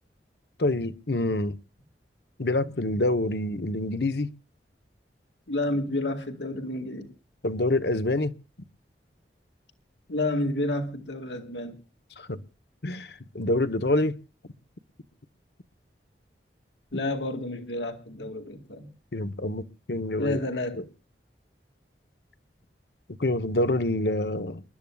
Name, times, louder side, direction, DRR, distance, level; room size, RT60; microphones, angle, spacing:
voice 1, 0.6-1.6 2.4-4.3 7.4-8.3 12.2-12.4 12.8-14.2 19.1-20.4 23.1-24.6, left 2 dB, 70° left, 1.1 m, -26 dB
voice 2, 5.5-7.1 10.1-11.8 16.9-18.9 20.2-20.8, left 1 dB, 85° left, 2.2 m, -30 dB
28.5 x 12.5 x 2.4 m
head